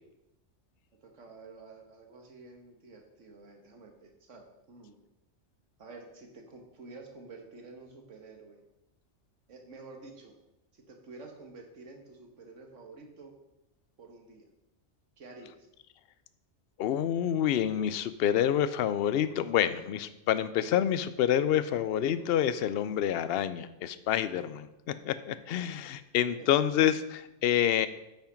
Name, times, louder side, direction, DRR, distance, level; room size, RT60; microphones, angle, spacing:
voice 1, 1.0-5.0 5.8-8.6 9.5-10.3 10.7-13.3 14.0-14.5 15.2-15.7 25.8-25.9 26.4-26.5, right 3 dB, 85° right, 3 dB, 1.7 m, -50 dB
voice 2, 16.8-27.9, left 10 dB, 65° left, 14 dB, 0.7 m, -28 dB
8.8 x 5.9 x 5.2 m, 0.90 s
omnidirectional pair, 1.2 m